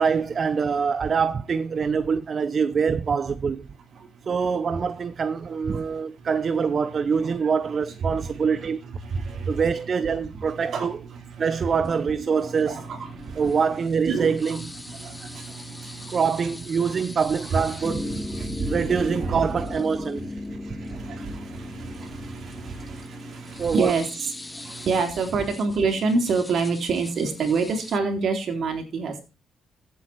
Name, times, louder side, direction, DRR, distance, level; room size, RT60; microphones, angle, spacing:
voice 1, 0.0-3.7 4.3-8.8 9.5-11.0 11.4-12.8 13.4-14.6 16.1-18.2 18.7-20.2 20.7-20.8 23.6-23.9, right 6 dB, 45° right, 0.7 m, -24 dB
voice 2, 3.9-4.3 5.7-6.4 7.1-7.4 8.0-9.8 10.3-11.8 12.4-13.7 14.0-16.5 16.8-17.1 17.4-19.6 20.2-29.2, right 4 dB, 60° right, 3.8 m, -29 dB
sound 1, 11.8-28.0, left 2 dB, 15° left, 1.0 m, -38 dB
15.0 x 8.2 x 4.6 m
cardioid pair, 90°, 0 cm